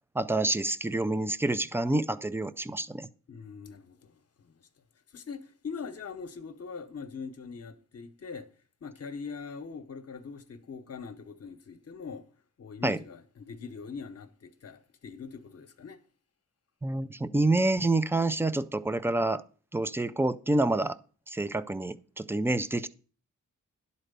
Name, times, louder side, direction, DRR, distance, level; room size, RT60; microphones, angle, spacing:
voice 1, 0.1-3.1 12.8-13.0 16.8-19.4 19.7-21.0 21.3-22.9, right 2 dB, 10° right, 0.3 m, -28 dB
voice 2, 3.3-4.6 5.1-8.5 8.8-12.3 12.6-16.0, left 5 dB, 50° left, 0.9 m, -42 dB
11.0 x 4.2 x 6.7 m
wide cardioid pair, 140°, 31 cm